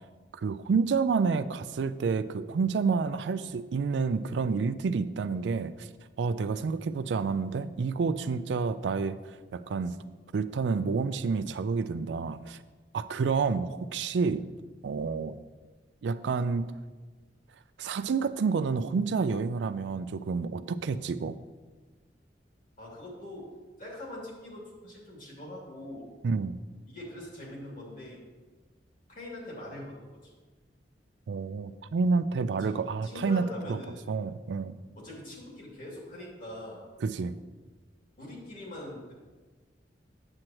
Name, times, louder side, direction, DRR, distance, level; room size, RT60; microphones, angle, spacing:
voice 1, 0.4-5.9 6.2-9.9 10.3-12.6 12.9-14.4 14.8-15.4 16.0-16.7 17.8-21.4 26.2-26.6 31.3-33.8 34.1-34.8 37.0-37.3, right 5 dB, 80° right, 12 dB, 0.4 m, -29 dB
voice 2, 22.8-23.5 23.8-26.1 26.9-28.2 29.1-30.3 32.6-32.7 33.0-34.3 35.0-36.8 38.2-39.1, left 1 dB, 50° left, -3 dB, 2.5 m, -43 dB
8.7 x 7.8 x 3.0 m, 1.3 s
head